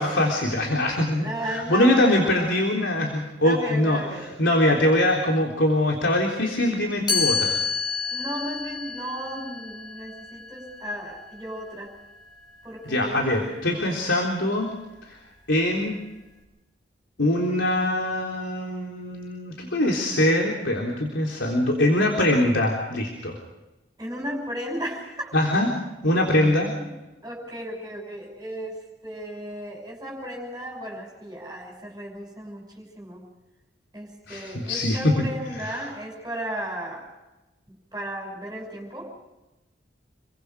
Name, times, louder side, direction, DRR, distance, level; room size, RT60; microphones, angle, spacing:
voice 1, 0.0-7.6 12.9-14.7 15.1-15.2 15.5-15.9 17.2-23.4 25.3-25.7 26.0-26.7 34.3-35.1 35.5-35.8, left 1 dB, 85° left, 0 dB, 3.7 m, -23 dB
voice 2, 1.2-2.6 3.4-4.3 8.1-11.9 12.6-14.3 24.0-25.4 26.4-26.9 27.2-33.2 33.9-37.0 37.9-39.1, right 1 dB, 15° right, -2 dB, 5.9 m, -35 dB
Chime, 7.1-12.9, left 5 dB, 25° left, 5.4 m, -30 dB
28.5 x 23.5 x 5.0 m, 1.0 s
head